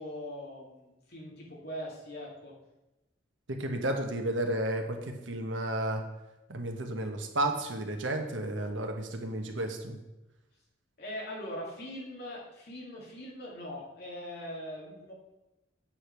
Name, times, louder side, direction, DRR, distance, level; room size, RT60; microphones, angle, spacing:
voice 1, 0.0-2.5 11.0-15.1, equal, 55° left, -3 dB, 2.5 m, -41 dB
voice 2, 3.5-6.0 6.5-10.0, right 1 dB, 80° right, 4 dB, 1.3 m, -32 dB
8.8 x 5.0 x 5.9 m, 0.98 s
head